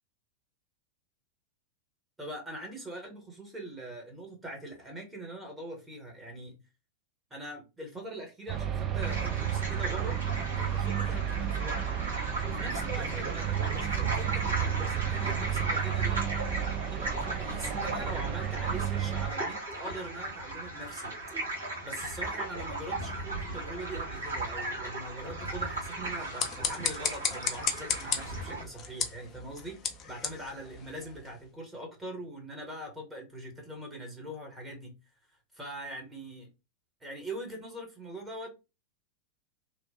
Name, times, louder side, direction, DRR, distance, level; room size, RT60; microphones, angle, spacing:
voice 1, 2.2-6.6 7.3-10.2 10.6-11.9 12.4-16.2 16.9-21.1 21.8-34.9 35.5-36.5 37.0-38.5, right 1 dB, 10° right, 1.1 m, -42 dB
sound 1, 8.5-19.3, right 10 dB, 30° right, 0.5 m, -32 dB
sound 2, 9.0-28.6, right 2 dB, 75° right, 1.5 m, -36 dB
sound 3, 26.1-31.4, left 6 dB, 30° left, 0.5 m, -35 dB
2.9 x 2.1 x 2.8 m
figure-of-eight pair, 90°, 0 cm